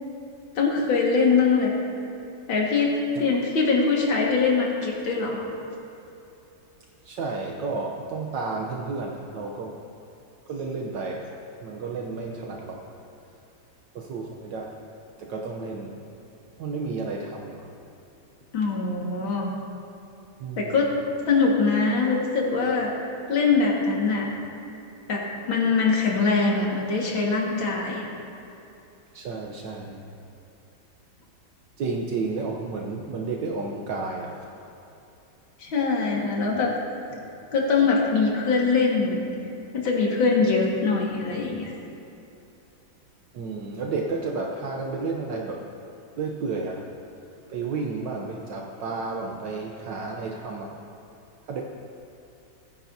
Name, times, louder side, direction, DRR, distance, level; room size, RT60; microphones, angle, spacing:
voice 1, 0.6-1.7 2.5-2.9 3.2-5.5 18.5-19.5 20.6-20.9 21.3-22.9 23.3-24.3 25.1-28.1 35.6-36.7 37.5-39.2 39.7-41.7, left 4 dB, 80° left, -2 dB, 2.5 m, -23 dB
voice 2, 7.0-9.7 10.5-11.3 11.6-12.8 13.9-14.7 15.2-16.0 16.6-17.7 20.4-20.8 29.1-30.0 31.8-34.5 43.3-45.6 46.2-46.9 47.5-50.8 51.5-51.6, right 4 dB, 70° right, 0 dB, 1.4 m, -31 dB
19.5 x 10.0 x 2.7 m, 2.8 s
omnidirectional pair, 2.1 m